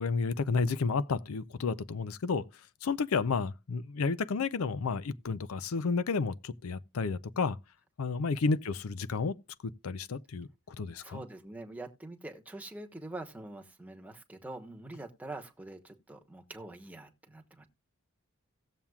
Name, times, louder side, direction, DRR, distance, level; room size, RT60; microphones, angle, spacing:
voice 1, 0.0-2.4 2.8-7.6 8.0-9.3 9.6-11.2, left 4 dB, 85° left, 0.5 m, -31 dB
voice 2, 11.0-17.7, right 2 dB, 10° right, 1.1 m, -45 dB
17.5 x 7.2 x 2.3 m
head